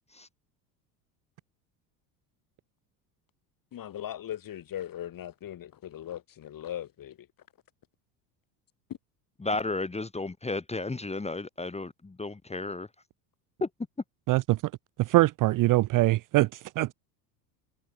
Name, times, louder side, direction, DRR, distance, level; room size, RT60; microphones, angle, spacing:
voice 1, 3.7-7.3 8.9-9.0, left 11 dB, 45° left, 3.5 m, -39 dB
voice 2, 9.4-12.9 13.6-13.7, left 3 dB, 15° left, 2.7 m, -33 dB
voice 3, 14.3-14.6 15.0-16.9, right 18 dB, 40° right, 0.6 m, -23 dB
hypercardioid pair, 85°, 48 cm